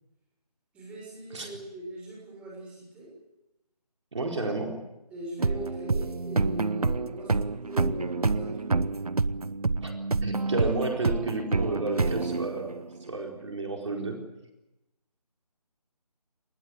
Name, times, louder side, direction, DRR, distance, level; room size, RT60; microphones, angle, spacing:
voice 1, 0.7-3.1 5.1-8.9, right 1 dB, 5° right, -3 dB, 6.3 m, -40 dB
voice 2, 4.1-4.7 9.8-9.9 10.2-12.7 13.1-14.2, right 3 dB, 45° right, 1 dB, 4.3 m, -31 dB
sound 1, 5.4-13.0, right 3 dB, 65° right, 0.9 m, -28 dB
26.0 x 20.0 x 8.1 m, 0.94 s
figure-of-eight pair, 160°, 20 cm